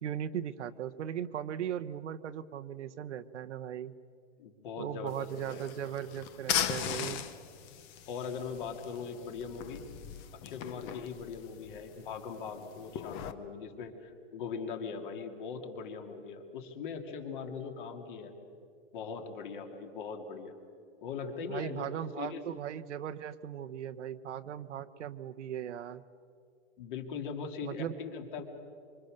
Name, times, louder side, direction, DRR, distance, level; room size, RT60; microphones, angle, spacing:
voice 1, 0.0-3.9 4.8-7.2 21.5-26.0 27.6-27.9, right 10 dB, 70° right, 9 dB, 1.1 m, -38 dB
voice 2, 4.4-5.7 8.1-9.8 10.4-18.3 18.9-20.5 21.0-22.4 26.8-28.4, left 5 dB, 45° left, 5 dB, 2.8 m, -40 dB
sound 1, 5.1-13.3, left 9 dB, 20° left, 0.7 m, -39 dB
26.0 x 25.5 x 6.6 m, 2.3 s
hypercardioid pair, 165°, 36 cm